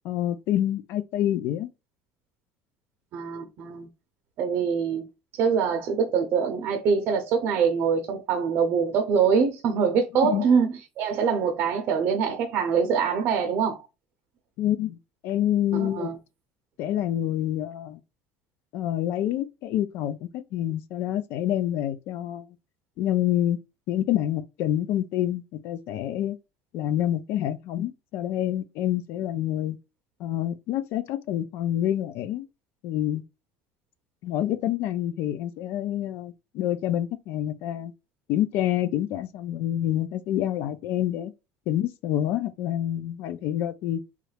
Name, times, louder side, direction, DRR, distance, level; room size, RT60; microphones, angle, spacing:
voice 1, 0.0-1.7 10.2-10.5 14.6-15.0 15.2-16.1 16.8-18.0 18.7-22.5 23.0-23.6 23.9-26.4 26.7-29.8 30.2-32.5 32.8-33.2 34.2-37.9 38.3-41.3 41.7-44.0, left 12 dB, 65° left, 0.4 m, -27 dB
voice 2, 3.1-3.9 4.4-5.1 5.4-13.8 15.7-16.1, right 6 dB, 55° right, 0.6 m, -24 dB
3.0 x 2.3 x 3.2 m
cardioid pair, 135°, 4 cm